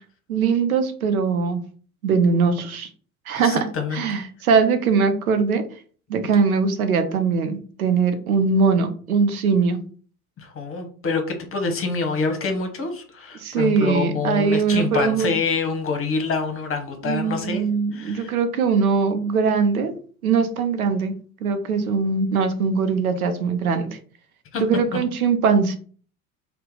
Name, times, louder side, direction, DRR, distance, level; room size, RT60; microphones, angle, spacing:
voice 1, 0.3-1.6 2.0-2.9 3.3-3.7 3.9-5.6 6.1-9.8 13.4-15.3 17.0-19.9 20.2-21.1 21.4-24.0 24.6-25.8, right 5 dB, 80° right, 8 dB, 0.6 m, -21 dB
voice 2, 3.3-4.0 10.4-18.3 24.5-24.6, left 4 dB, 30° left, 5 dB, 0.9 m, -26 dB
2.7 x 2.2 x 3.8 m, 0.42 s
figure-of-eight pair, 60°, 42 cm